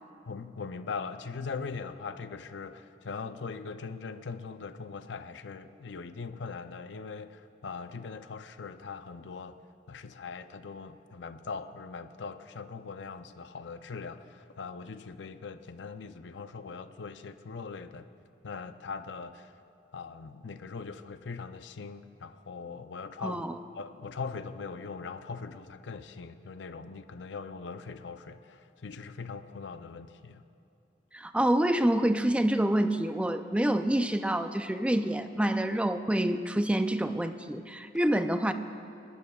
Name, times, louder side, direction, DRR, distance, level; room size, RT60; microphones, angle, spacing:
voice 1, 0.3-9.6 9.9-18.1 18.4-19.5 19.9-23.4 23.7-30.4, left 5 dB, 85° left, 10 dB, 0.5 m, -41 dB
voice 2, 23.2-23.6 31.1-38.5, right 1 dB, 5° right, 9 dB, 0.4 m, -27 dB
29.5 x 12.5 x 2.3 m, 2.5 s
head